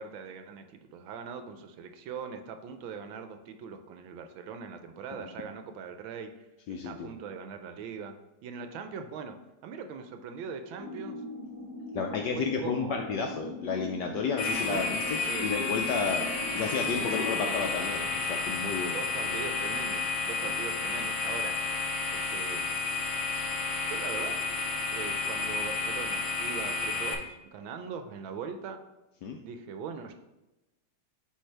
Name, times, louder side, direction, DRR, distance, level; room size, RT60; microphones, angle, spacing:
voice 1, 0.0-6.3 6.8-8.1 8.4-9.4 9.6-11.2 12.3-12.9 14.7-14.8 15.3-15.5 16.2-16.3 16.9-17.5 18.9-21.6 22.1-22.6 23.8-24.4 24.9-28.8 29.4-30.1, right 6 dB, 75° right, 7 dB, 1.3 m, -40 dB
voice 2, 6.7-7.1 11.9-16.2 16.5-19.0 19.2-19.4 20.4-20.5 29.2-29.4, left 5 dB, 75° left, 3 dB, 1.0 m, -32 dB
sound 1, 10.8-17.3, left 1 dB, 5° right, 1.0 m, -40 dB
sound 2, 14.4-27.1, left 4 dB, 60° left, 0.6 m, -31 dB
10.0 x 3.3 x 3.3 m, 0.99 s
omnidirectional pair, 2.3 m